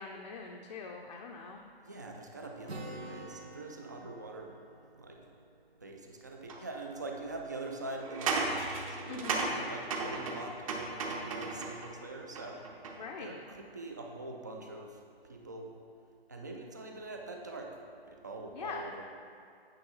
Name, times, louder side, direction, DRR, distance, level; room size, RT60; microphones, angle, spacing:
voice 1, 0.0-1.6 9.1-9.5 12.9-13.4 18.5-18.9, left 4 dB, 40° left, 1 dB, 0.6 m, -42 dB
voice 2, 1.8-4.5 5.0-5.2 5.8-8.6 9.0-12.6 13.2-15.8 16.3-17.8 18.1-19.0, right 2 dB, 20° right, 1 dB, 0.4 m, -43 dB
Acoustic guitar, 2.7-6.4, right 2 dB, 90° right, 1.2 m, -48 dB
sound 1, 6.5-6.6 8.0-11.9 12.4-13.1, right 3 dB, 35° right, 0.8 m, -35 dB
8.9 x 6.1 x 3.9 m, 2.4 s
figure-of-eight pair, 145°, 31 cm